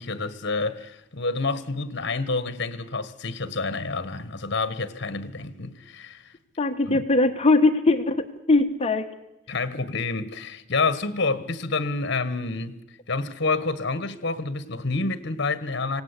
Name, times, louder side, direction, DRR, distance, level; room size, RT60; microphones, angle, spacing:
voice 1, 0.0-6.3 6.9-7.0 9.5-12.8 13.1-16.0, left 3 dB, 60° left, 1.4 m, -28 dB
voice 2, 6.6-9.1, left 2 dB, 30° left, 1.3 m, -21 dB
26.0 x 18.0 x 8.4 m
head